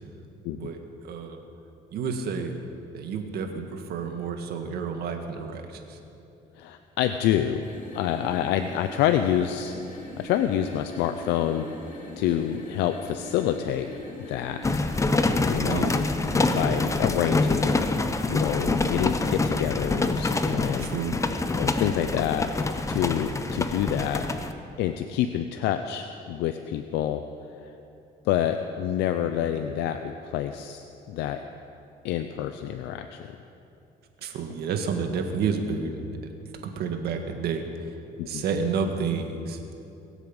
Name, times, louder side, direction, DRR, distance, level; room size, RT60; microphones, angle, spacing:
voice 1, 0.5-1.4 1.9-2.5 2.9-6.0 15.6-16.0 20.8-21.2 34.2-36.0 36.6-37.9 38.3-39.6, right 5 dB, 70° right, 5 dB, 1.8 m, -30 dB
voice 2, 6.6-7.7 7.9-9.7 10.2-11.7 12.2-13.9 14.2-14.8 15.5-15.9 16.5-17.8 18.3-20.9 21.6-24.5 24.8-27.2 27.6-27.7 28.2-31.4 32.0-33.2 38.2-38.4, left 10 dB, 85° left, 8 dB, 0.6 m, -27 dB
sound 1, 7.5-16.7, left 1 dB, 50° left, 3.7 m, -41 dB
Kalgoorlie Rain for Coral, 14.6-24.5, left 3 dB, 20° left, 0.9 m, -26 dB
22.5 x 8.2 x 7.1 m, 2.8 s
cardioid pair, 110°, 17 cm